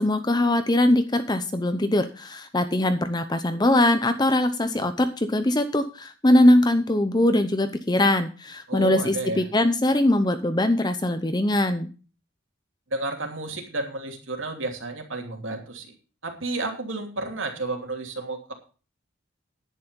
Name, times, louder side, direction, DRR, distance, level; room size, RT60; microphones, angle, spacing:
voice 1, 0.0-11.9, left 1 dB, 20° left, 9 dB, 0.7 m, -21 dB
voice 2, 8.7-9.5 12.9-15.9 16.2-18.5, right 2 dB, 70° right, 3 dB, 2.9 m, -31 dB
10.5 x 9.7 x 5.2 m, 0.36 s
head